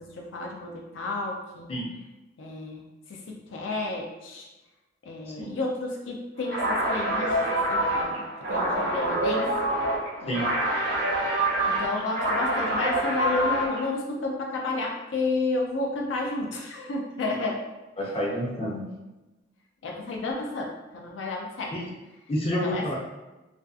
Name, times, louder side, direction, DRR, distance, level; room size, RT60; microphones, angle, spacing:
voice 1, 0.0-1.8 2.4-4.5 5.0-9.5 10.2-10.4 11.7-17.8 19.8-21.8 22.6-22.8, left 2 dB, 85° left, 0 dB, 0.4 m, -31 dB
voice 2, 5.3-5.6 10.3-10.4 18.0-18.9 21.7-21.9 22.3-22.9, equal, 30° left, -4 dB, 0.5 m, -29 dB
sound 1, 6.5-13.9, right 1 dB, 60° right, 0.6 m, -26 dB
2.5 x 2.3 x 2.4 m, 1.1 s
head